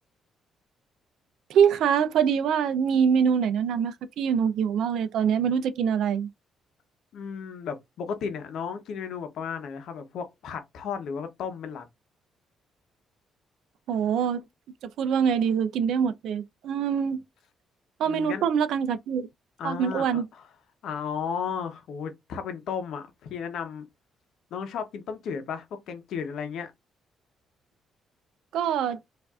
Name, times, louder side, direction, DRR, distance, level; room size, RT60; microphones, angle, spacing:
voice 1, 1.5-6.3 13.9-14.4 15.0-17.2 18.0-19.3 19.6-20.3 28.5-29.0, right 7 dB, 80° right, 0.4 m, -24 dB
voice 2, 7.1-11.9 18.0-18.5 19.6-20.5 20.8-23.9 24.5-26.7, left 7 dB, 75° left, 0.8 m, -34 dB
4.6 x 2.6 x 2.4 m
cardioid pair, 90°, 0 cm